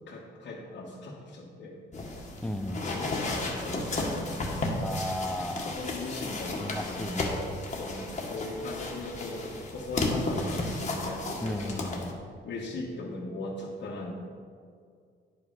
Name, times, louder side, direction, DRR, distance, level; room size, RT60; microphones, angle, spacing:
voice 1, 0.1-1.8 2.7-4.7 5.6-7.3 7.7-9.5 9.7-11.9 12.4-14.1, left 2 dB, 65° left, -6 dB, 1.4 m, -39 dB
sound 1, 1.9-12.1, left 2 dB, 35° left, 1.6 m, -33 dB
voice 2, 2.4-3.2 4.8-5.8 6.6-7.4 11.4-12.2, left 1 dB, 5° left, 7 dB, 0.6 m, -35 dB
9.9 x 5.2 x 5.6 m, 2.2 s
cardioid pair, 90°, 20 cm